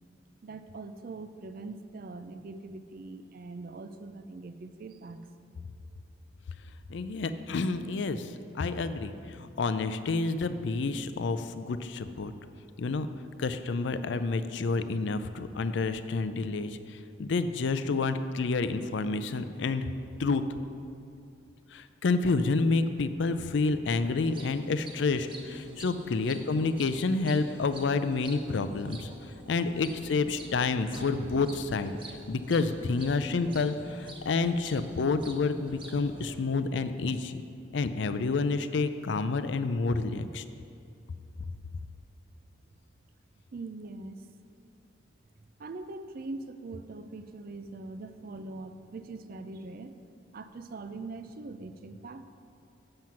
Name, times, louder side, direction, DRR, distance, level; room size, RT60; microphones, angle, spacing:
voice 1, 0.4-5.3 25.7-26.2 26.5-26.6 43.5-44.3 45.6-50.0 50.3-52.2, right 3 dB, 50° right, 9 dB, 0.4 m, -42 dB
voice 2, 6.9-12.3 12.8-13.1 13.4-19.9 20.2-20.4 21.7-29.1 29.5-32.0 32.3-37.4 37.7-40.4, left 3 dB, 65° left, 11 dB, 0.4 m, -29 dB
sound 1, 24.0-36.3, right 1 dB, 25° right, 0.9 m, -47 dB
7.7 x 7.5 x 5.7 m, 2.4 s
head